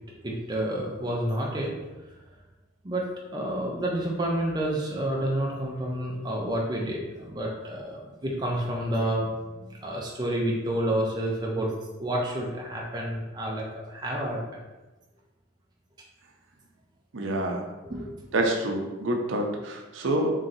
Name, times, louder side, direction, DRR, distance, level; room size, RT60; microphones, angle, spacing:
voice 1, 0.2-1.7 2.8-9.3 9.6-11.7 12.0-14.4 17.8-18.1, right 1 dB, 20° right, -2 dB, 0.4 m, -29 dB
voice 2, 17.1-17.6 18.3-20.3, right 1 dB, 70° right, 2 dB, 0.6 m, -27 dB
3.1 x 2.7 x 3.8 m, 1.1 s
head